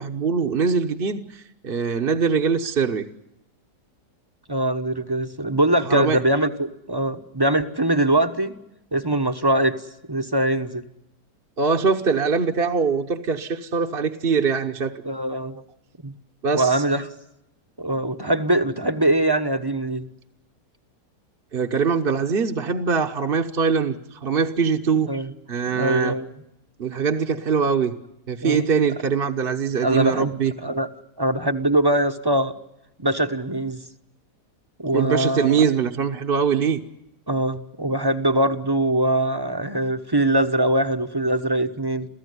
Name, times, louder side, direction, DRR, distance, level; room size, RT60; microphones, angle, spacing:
voice 1, 0.0-3.1 5.8-6.2 11.6-15.0 16.4-16.8 21.5-25.1 25.5-26.1 26.8-28.0 28.3-30.5 34.9-36.8, right 6 dB, 40° right, 3 dB, 1.2 m, -22 dB
voice 2, 4.5-8.5 8.9-9.8 10.1-10.9 15.0-15.6 16.0-16.1 16.5-17.1 17.8-20.0 25.1-25.3 25.7-26.3 28.4-28.6 29.8-30.3 30.6-30.9 31.2-32.5 33.0-33.8 34.8-35.6 37.3-42.1, right 1 dB, 15° right, 8 dB, 1.0 m, -22 dB
28.0 x 16.0 x 9.7 m, 0.85 s
omnidirectional pair, 1.7 m